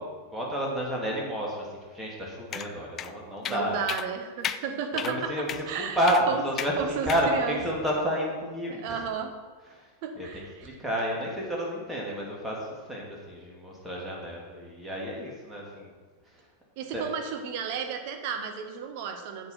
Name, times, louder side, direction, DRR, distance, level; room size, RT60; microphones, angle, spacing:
voice 1, 0.0-1.7 1.9-3.8 5.0-6.7 7.0-9.0 10.2-10.3 10.6-12.6 12.9-15.9 16.9-17.0, equal, 10° right, -3 dB, 2.6 m, -30 dB
sound 1, 2.5-2.7 3.0-3.1 3.4-3.6 3.9-4.1 4.4-4.6 5.0-5.1 5.5-5.6 6.1-6.2 6.6-6.7 7.1-7.3, left 9 dB, 30° left, 0.4 m, -33 dB
voice 2, 3.5-6.5 6.8-7.6 8.7-9.4 10.0-10.7 16.8-19.5, right 6 dB, 45° right, 5 dB, 1.3 m, -33 dB
8.0 x 7.9 x 5.7 m, 1.4 s
figure-of-eight pair, 90°, 0 cm